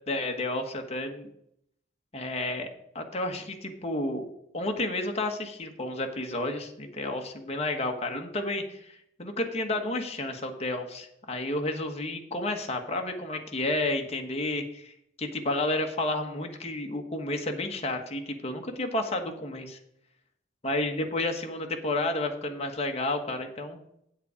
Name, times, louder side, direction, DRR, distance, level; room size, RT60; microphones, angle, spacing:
voice 1, 0.1-1.3 2.1-2.7 2.9-4.3 4.5-14.9 15.2-19.8 20.6-23.8, left 2 dB, 35° left, 4 dB, 1.3 m, -31 dB
8.2 x 8.0 x 5.0 m, 0.74 s
head